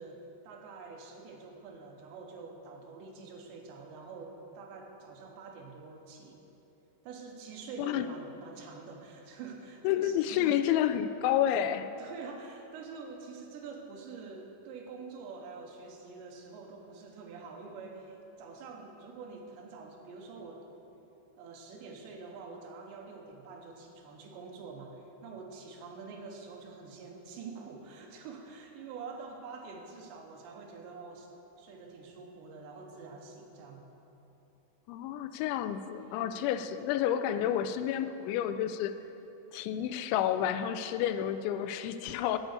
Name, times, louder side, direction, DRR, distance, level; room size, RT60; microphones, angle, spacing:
voice 1, 0.0-6.4 7.0-10.6 12.0-20.7 21.4-31.3 31.6-33.9 36.0-36.4 37.3-37.6, right 4 dB, 80° right, 2 dB, 3.1 m, -46 dB
voice 2, 9.8-11.9 34.9-38.9 39.5-42.4, left 10 dB, 85° left, 10 dB, 2.9 m, -30 dB
11.0 x 6.5 x 8.1 m, 3.0 s
omnidirectional pair, 5.3 m